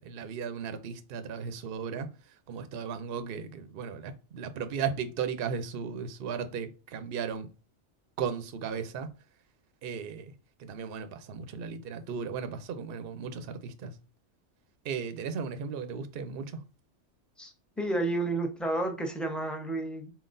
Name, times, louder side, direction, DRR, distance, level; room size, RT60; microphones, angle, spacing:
voice 1, 0.0-2.1 2.5-7.5 8.2-9.1 9.8-10.3 10.6-13.9 14.8-16.6, right 6 dB, 60° right, 0.7 m, -36 dB
voice 2, 17.4-20.1, right 2 dB, ahead, 0.8 m, -31 dB
4.5 x 3.9 x 2.5 m
omnidirectional pair, 1.2 m